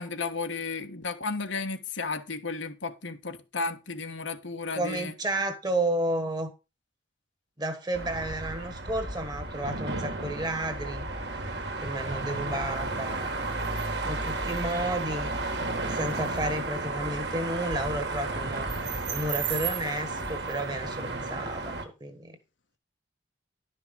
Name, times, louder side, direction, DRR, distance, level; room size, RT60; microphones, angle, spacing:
voice 1, 0.0-5.1, left 4 dB, 75° left, 1.4 m, -33 dB
voice 2, 4.7-6.5 7.6-11.1 11.8-13.4 14.0-15.3 15.9-18.7 19.1-22.4, right 1 dB, 20° right, 1.5 m, -32 dB
sound 1, 7.9-21.8, right 3 dB, 60° right, 1.8 m, -33 dB
11.5 x 5.8 x 5.1 m
head